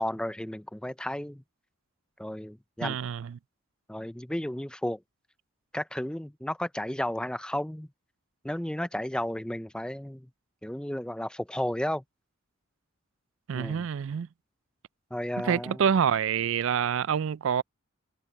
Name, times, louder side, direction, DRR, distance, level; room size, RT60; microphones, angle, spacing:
voice 1, 0.0-1.4 2.2-3.0 3.9-5.0 5.7-7.9 8.4-10.3 10.6-12.0 13.5-13.9 15.1-15.8, left 1 dB, 5° left, 0.5 m, -33 dB
voice 2, 2.8-3.4 13.5-14.3 15.4-17.6, right 7 dB, 65° right, 0.3 m, -27 dB
head